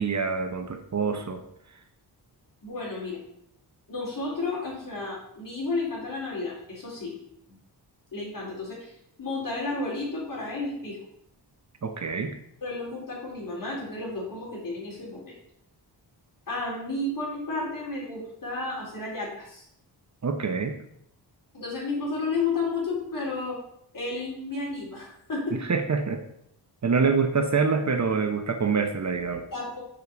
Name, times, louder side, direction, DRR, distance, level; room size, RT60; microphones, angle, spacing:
voice 1, 0.0-1.4 11.8-12.3 20.2-20.8 25.5-26.2 26.8-29.5, right 5 dB, 40° right, 7 dB, 0.9 m, -26 dB
voice 2, 2.6-3.2 3.9-7.1 8.1-8.9 9.2-11.0 12.6-15.4 16.5-19.6 21.5-23.6 23.9-25.6 29.5-29.8, left 3 dB, 50° left, -4 dB, 4.0 m, -32 dB
7.1 x 4.9 x 6.9 m, 0.73 s
wide cardioid pair, 120°, 41 cm